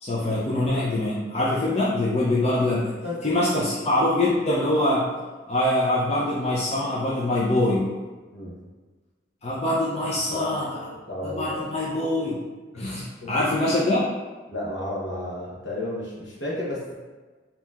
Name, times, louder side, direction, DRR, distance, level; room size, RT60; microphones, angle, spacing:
voice 1, 0.0-2.9 3.2-5.1 5.5-7.9 9.4-10.7 11.2-12.4 12.8-14.0, left 1 dB, 35° left, -6 dB, 0.5 m, -24 dB
voice 2, 10.3-10.8 11.1-11.6 12.7-13.3 14.5-16.9, left 1 dB, 70° left, -5 dB, 1.1 m, -32 dB
4.3 x 2.8 x 2.4 m, 1.3 s
head